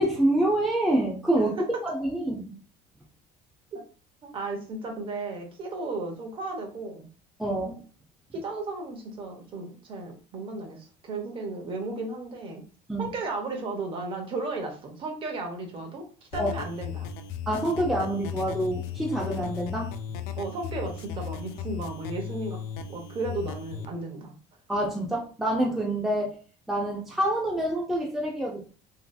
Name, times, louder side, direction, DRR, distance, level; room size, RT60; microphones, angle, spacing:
voice 1, 0.0-1.6 1.8-2.6 7.4-7.8 12.9-13.1 16.4-16.5 17.5-19.9 24.7-26.4 26.7-28.6, right 1 dB, ahead, -3 dB, 0.5 m, -26 dB
voice 2, 4.2-7.1 8.3-12.6 13.0-16.1 16.3-17.1 20.4-22.6 22.9-24.3, right 3 dB, 35° right, 3 dB, 0.8 m, -34 dB
sound 1, 16.3-23.9, left 7 dB, 90° left, 0.4 m, -36 dB
3.1 x 2.7 x 2.3 m, 0.38 s
cardioid pair, 155°, 15 cm